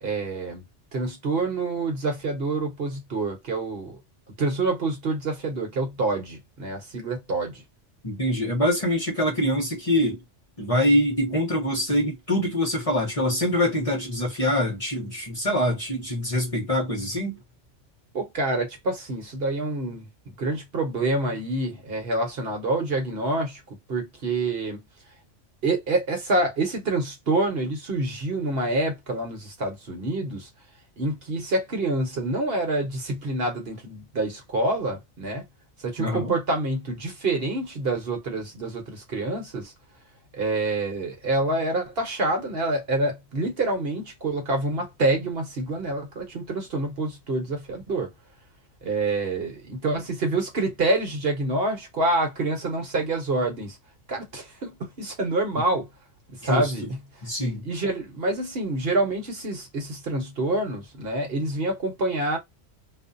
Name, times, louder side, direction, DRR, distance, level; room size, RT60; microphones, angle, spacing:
voice 1, 0.0-0.6 0.9-4.0 4.4-7.6 18.1-24.8 25.6-30.5 31.0-35.4 35.8-39.7 40.3-48.1 48.8-53.8 54.1-55.9 56.4-57.0 57.6-62.4, right 2 dB, 55° right, 1.1 m, -27 dB
voice 2, 8.0-10.2 10.6-17.4 36.0-36.3 56.4-56.7 57.2-57.6, left 1 dB, 30° left, 0.9 m, -24 dB
2.5 x 2.3 x 2.5 m
omnidirectional pair, 1.3 m